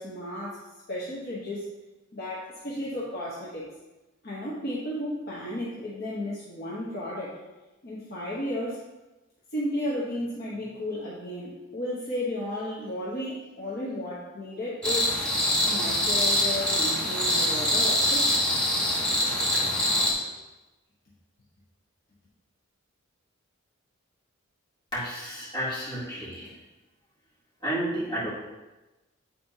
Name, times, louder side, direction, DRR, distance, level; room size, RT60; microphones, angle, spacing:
voice 1, 0.0-1.7 2.1-3.7 4.2-7.4 7.8-8.8 9.5-15.1 15.6-18.3, left 1 dB, 50° left, -7 dB, 1.0 m, -33 dB
sound 1, 14.8-20.1, left 1 dB, 5° left, 1.0 m, -24 dB
voice 2, 24.9-26.5 27.6-28.3, right 1 dB, 20° left, -9 dB, 2.2 m, -31 dB
8.8 x 4.2 x 2.8 m, 1.1 s
head